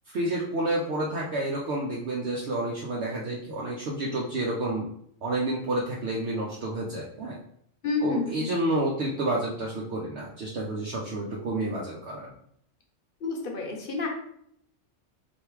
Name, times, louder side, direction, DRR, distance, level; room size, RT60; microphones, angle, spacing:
voice 1, 0.1-4.9 5.2-7.4 8.0-12.3, right 1 dB, 65° right, -4 dB, 0.9 m, -29 dB
voice 2, 7.8-8.5 13.2-14.1, left 3 dB, 50° left, 1 dB, 1.0 m, -29 dB
3.4 x 2.7 x 4.6 m, 0.69 s
omnidirectional pair, 1.3 m